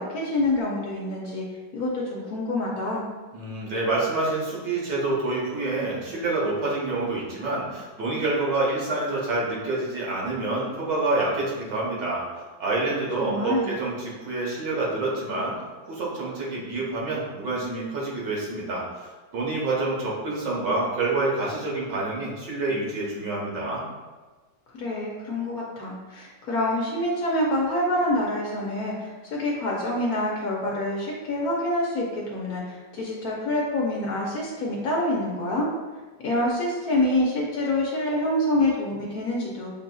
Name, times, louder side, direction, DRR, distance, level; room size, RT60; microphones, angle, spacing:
voice 1, 0.0-1.4 1.7-3.1 13.2-13.7 24.8-35.7 36.2-39.7, left 1 dB, 65° left, -3 dB, 1.0 m, -26 dB
voice 2, 3.3-12.2 12.6-15.6 15.9-23.8, right 2 dB, 75° right, -5 dB, 1.7 m, -27 dB
6.4 x 2.7 x 2.3 m, 1.3 s
omnidirectional pair, 2.0 m